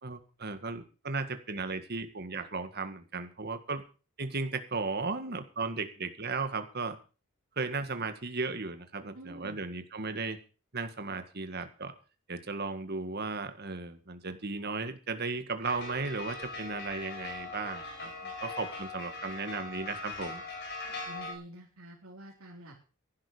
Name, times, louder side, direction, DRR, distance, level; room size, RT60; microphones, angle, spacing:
voice 1, 0.0-3.8 4.2-7.0 7.6-10.4 10.7-11.9 12.3-20.4, right 4 dB, 50° right, 8 dB, 1.9 m, -35 dB
voice 2, 9.1-9.6 21.1-22.8, right 1 dB, 85° right, -4 dB, 4.3 m, -48 dB
sound 1, 15.6-21.3, left 3 dB, 55° left, 4.4 m, -41 dB
15.5 x 11.5 x 5.1 m, 0.36 s
head